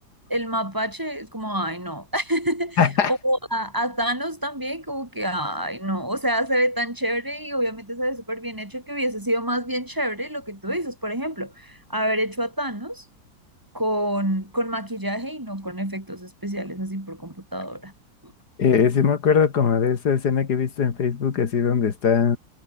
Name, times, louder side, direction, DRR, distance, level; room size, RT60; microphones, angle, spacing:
voice 1, 0.3-2.8 3.1-13.0 13.7-17.9 18.2-18.3, equal, 10° right, 2.4 m, -27 dB
voice 2, 2.8-3.1 18.6-22.4, left 6 dB, 55° left, 2.2 m, -20 dB
omnidirectional pair, 2.1 m